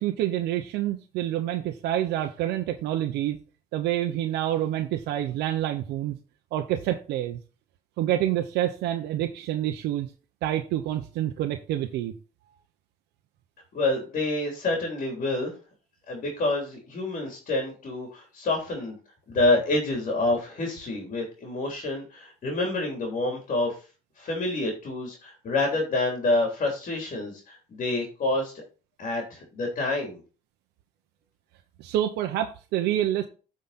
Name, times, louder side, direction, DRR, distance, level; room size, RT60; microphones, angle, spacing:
voice 1, 0.0-3.4 3.7-6.2 6.5-7.4 8.0-10.1 10.4-12.1 31.8-33.3, right 12 dB, 85° right, 5 dB, 0.9 m, -27 dB
voice 2, 13.7-15.5 16.1-19.0 19.3-23.8 24.2-28.6 29.0-30.2, left 2 dB, 50° left, 1 dB, 3.3 m, -27 dB
9.4 x 5.2 x 4.2 m, 0.35 s
cardioid pair, 110°, 17 cm